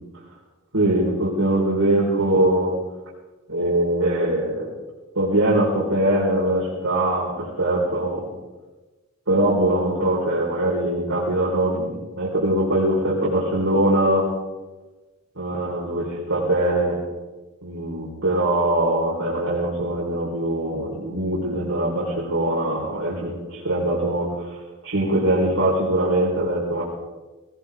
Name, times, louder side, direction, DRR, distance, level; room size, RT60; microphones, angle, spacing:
voice 1, 0.7-2.7 3.5-4.7 5.1-8.2 9.3-14.2 15.3-17.0 17.6-24.6 24.8-26.8, right 1 dB, 85° right, -7 dB, 4.8 m, -22 dB
19.0 x 19.0 x 3.7 m, 1.2 s
head